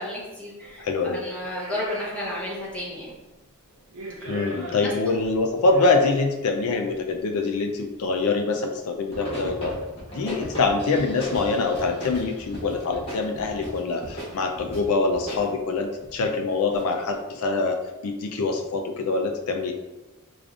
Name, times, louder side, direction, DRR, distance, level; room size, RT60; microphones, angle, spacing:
voice 1, 0.0-3.1 4.8-5.2, left 1 dB, 5° left, -7 dB, 0.9 m, -33 dB
sound 1, 0.6-0.8 1.4-2.8 3.1-3.2 3.8-6.4 7.3-7.4 9.1-9.6 10.1-10.2 10.4-10.9 11.2-11.6 12.0-12.3 12.7-13.6 14.0-15.0 15.4-15.6 15.8-16.3 16.7-17.2, right 1 dB, 90° right, 0.7 m, -40 dB
voice 2, 0.8-1.2 4.3-9.8 10.1-17.8 18.0-19.7, left 3 dB, 75° left, 4 dB, 0.4 m, -24 dB
sound 2, 9.1-15.5, equal, 25° left, 1.2 m, -37 dB
4.9 x 2.5 x 2.3 m, 1.1 s
head